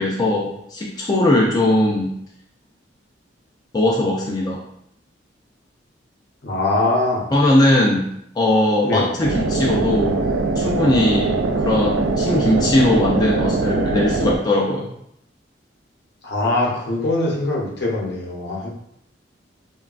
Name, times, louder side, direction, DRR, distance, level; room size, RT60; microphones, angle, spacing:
voice 1, 0.0-2.1 3.7-4.6 7.3-8.1 8.4-10.2 10.6-14.9, left 1 dB, 20° left, -3 dB, 0.3 m, -19 dB
voice 2, 6.4-7.2 8.8-9.1 16.2-18.7, left 2 dB, 60° left, -2 dB, 0.7 m, -22 dB
sound 1, 9.2-14.4, right 3 dB, 75° right, 0.3 m, -21 dB
3.1 x 2.2 x 2.4 m, 0.74 s
head